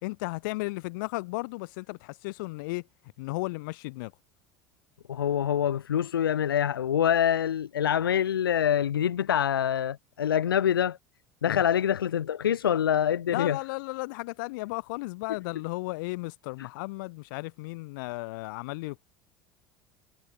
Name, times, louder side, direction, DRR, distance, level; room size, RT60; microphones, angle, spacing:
voice 1, 0.0-2.8 3.2-4.1 11.5-11.6 13.3-19.0, left 24 dB, 65° left, 2.9 m, -34 dB
voice 2, 5.1-11.0 11.4-13.6 16.6-16.7, left 9 dB, 80° left, 0.8 m, -25 dB
figure-of-eight pair, 70°, 12 cm